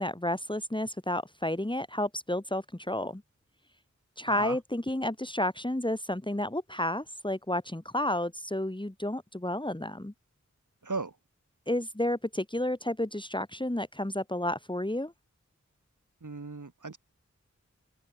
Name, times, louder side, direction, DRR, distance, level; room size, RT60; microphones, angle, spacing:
voice 1, 0.0-3.2 4.2-10.1 11.7-15.1, left 1 dB, 15° left, 2.5 m, -31 dB
voice 2, 4.3-4.6 10.8-11.2 16.2-17.0, right 3 dB, 85° right, 2.9 m, -36 dB
open air
wide cardioid pair, 40°, 30 cm